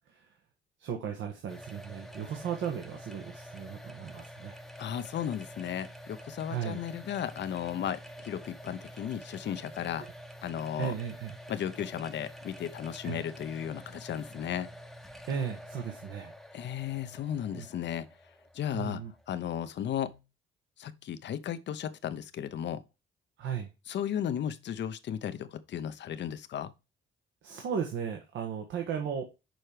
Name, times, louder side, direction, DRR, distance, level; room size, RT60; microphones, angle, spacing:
voice 1, 0.8-4.6 6.5-6.8 10.0-10.1 10.8-11.4 13.0-13.2 15.3-16.3 17.5-17.7 18.7-19.1 23.4-23.7 27.4-29.2, right 7 dB, 75° right, 1.4 m, -36 dB
sound 1, 1.5-20.2, equal, ahead, 0.9 m, -48 dB
voice 2, 4.8-10.1 10.4-10.9 11.5-14.7 16.5-18.1 18.5-20.2 20.8-22.8 23.9-26.7, left 9 dB, 65° left, 0.8 m, -35 dB
6.3 x 4.5 x 4.9 m
cardioid pair, 90°, 20 cm